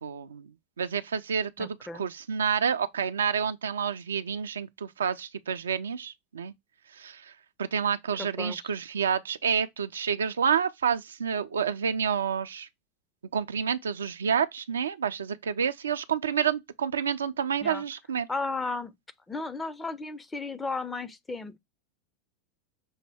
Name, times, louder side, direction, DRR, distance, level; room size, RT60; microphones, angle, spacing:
voice 1, 0.0-6.5 6.9-12.7 13.3-18.3, right 7 dB, 80° right, 0.3 m, -29 dB
voice 2, 1.6-2.1 8.2-8.6 17.6-17.8 18.3-18.9 19.3-21.6, left 3 dB, 15° left, 0.5 m, -34 dB
6.2 x 2.1 x 3.3 m
figure-of-eight pair, 85°, 0 cm